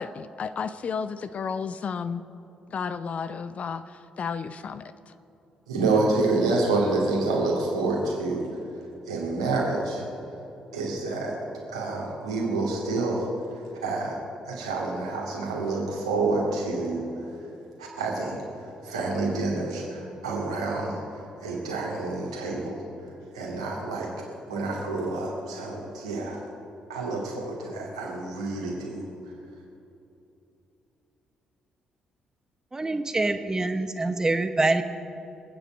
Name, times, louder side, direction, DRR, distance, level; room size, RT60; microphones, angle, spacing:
voice 1, 0.0-2.2 2.7-5.1, left 6 dB, 45° left, 13 dB, 0.6 m, -33 dB
voice 2, 5.7-8.5 9.1-10.0 10.7-11.4 11.7-13.3 13.8-14.2 14.4-17.3 17.8-22.8 23.3-26.4 26.9-29.0, right 3 dB, 80° right, -3 dB, 2.6 m, -28 dB
voice 3, 32.7-34.8, right 2 dB, 20° right, 8 dB, 1.0 m, -25 dB
26.5 x 9.6 x 4.5 m, 2.8 s
figure-of-eight pair, 40°, 3 cm